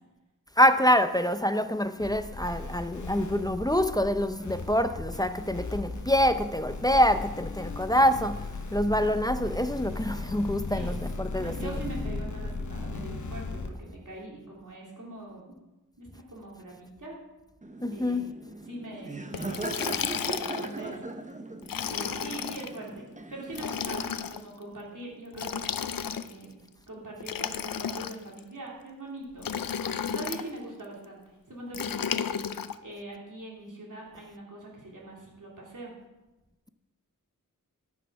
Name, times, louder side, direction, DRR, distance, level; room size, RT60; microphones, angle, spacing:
voice 1, 0.6-8.4 8.7-11.7 17.8-18.3, equal, 10° left, 0.6 m, -25 dB
sound 1, 2.0-13.7, left 3 dB, 60° left, 1.0 m, -37 dB
voice 2, 10.7-15.6 16.0-17.2 17.9-18.3 18.7-20.0 20.2-21.0 21.9-25.7 26.2-29.5 30.1-32.3 32.8-35.9, right 2 dB, 65° right, 3.2 m, -42 dB
Laughter, 17.6-23.9, right 2 dB, 20° right, 0.9 m, -39 dB
Liquid, 19.3-20.8 21.6-22.7 23.5-24.4 25.3-26.4 27.2-28.4 29.4-30.5 31.7-32.7, left 7 dB, 90° left, 0.5 m, -33 dB
13.0 x 6.3 x 5.8 m
wide cardioid pair, 60°, 33 cm